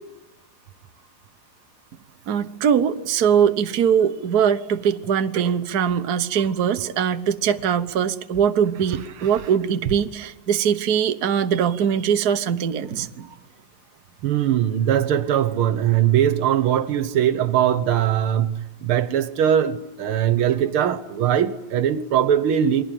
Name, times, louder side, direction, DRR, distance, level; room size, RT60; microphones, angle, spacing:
voice 1, 2.3-13.3, right 8 dB, 50° right, 1.5 m, -21 dB
voice 2, 14.2-22.8, right 10 dB, 80° right, 2.0 m, -21 dB
29.0 x 22.0 x 9.2 m
omnidirectional pair, 2.3 m